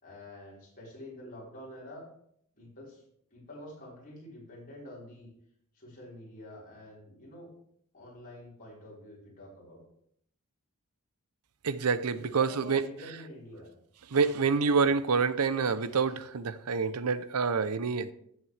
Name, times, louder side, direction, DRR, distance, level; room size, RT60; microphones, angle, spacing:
voice 1, 0.0-2.1 2.6-3.0 3.3-5.3 5.7-7.5 7.9-9.8 12.1-13.7 14.8-14.9, left 1 dB, 40° left, -5 dB, 4.8 m, -47 dB
voice 2, 11.6-12.8 14.1-18.1, right 5 dB, 85° right, 14 dB, 0.7 m, -27 dB
13.5 x 7.9 x 3.4 m, 0.70 s
head